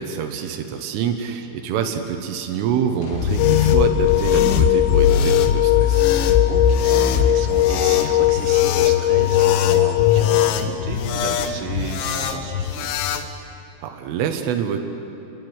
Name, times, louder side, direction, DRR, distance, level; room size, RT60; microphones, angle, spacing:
voice 1, 0.0-6.0 13.8-14.8, right 8 dB, 90° right, 5 dB, 3.9 m, -26 dB
sound 1, 2.6-12.2, left 3 dB, 55° left, 3.9 m, -42 dB
sound 2, 3.1-13.3, left 7 dB, 75° left, 3.3 m, -22 dB
sound 3, 3.4-10.5, left 18 dB, 90° left, 3.4 m, -19 dB
voice 2, 6.5-12.9, right 6 dB, 65° right, 2 dB, 4.0 m, -34 dB
28.0 x 22.5 x 8.1 m, 2.8 s
omnidirectional pair, 5.6 m